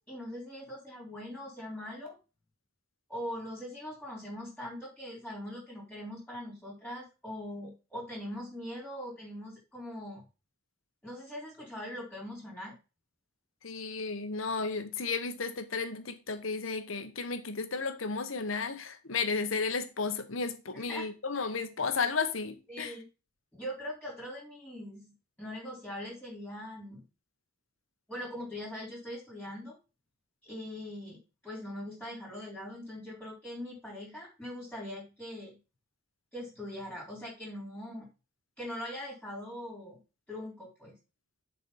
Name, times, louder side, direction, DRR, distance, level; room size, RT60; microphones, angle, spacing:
voice 1, 0.0-2.2 3.1-10.2 11.0-12.8 20.7-21.1 21.4-21.5 22.7-23.1 23.5-25.1 25.4-27.0 28.1-29.8 30.4-31.2 31.4-35.6 36.3-38.1 38.6-40.0 40.3-41.0, left 1 dB, 5° left, 3.6 m, -41 dB
voice 2, 13.6-22.9, left 4 dB, 85° left, 1.2 m, -33 dB
7.1 x 4.6 x 5.4 m
head